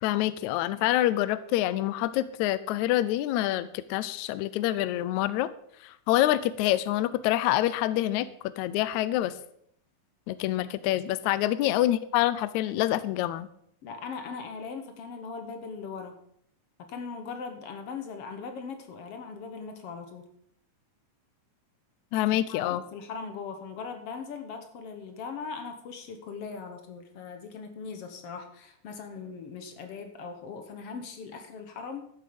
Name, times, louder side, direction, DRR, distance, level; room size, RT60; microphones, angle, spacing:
voice 1, 0.0-5.5 5.8-8.3 8.6-9.3 10.3-13.5 22.1-22.8, left 14 dB, 80° left, 15 dB, 1.7 m, -26 dB
voice 2, 13.8-16.2 16.8-20.3 22.5-32.1, left 5 dB, 60° left, 7 dB, 1.7 m, -40 dB
12.5 x 7.4 x 5.1 m, 0.69 s
omnidirectional pair, 3.7 m